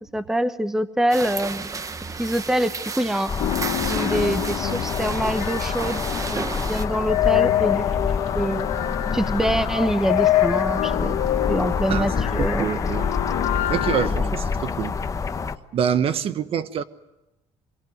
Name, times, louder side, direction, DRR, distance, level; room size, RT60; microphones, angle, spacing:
voice 1, 0.1-1.7 2.2-3.3 3.8-6.0 6.3-7.9 8.3-8.7 9.1-11.2 11.5-12.9 14.0-14.3, right 1 dB, 5° right, 1.1 m, -25 dB
sound 1, 1.1-6.9, right 4 dB, 25° right, 1.1 m, -32 dB
sound 2, 3.3-15.6, left 5 dB, 25° left, 1.2 m, -27 dB
sound 3, 3.4-14.1, left 14 dB, 85° left, 1.7 m, -26 dB
voice 2, 11.9-13.1 13.7-14.9 15.7-16.8, right 8 dB, 50° right, 1.3 m, -26 dB
25.0 x 23.0 x 9.4 m
cardioid pair, 120°, 12 cm